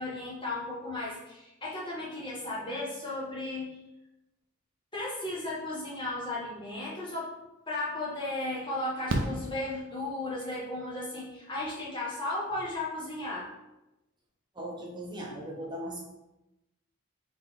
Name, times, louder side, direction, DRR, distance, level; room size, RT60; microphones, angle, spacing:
voice 1, 0.0-3.8 4.9-7.3 7.7-13.5, left 2 dB, 20° left, -6 dB, 1.2 m, -35 dB
Fireworks, 7.4-7.5 9.1-10.4 12.2-12.3 12.5-12.6, right 1 dB, 65° right, 0.5 m, -33 dB
voice 2, 14.5-16.0, right 1 dB, 20° right, -3 dB, 0.9 m, -38 dB
4.0 x 3.5 x 3.7 m, 0.96 s
head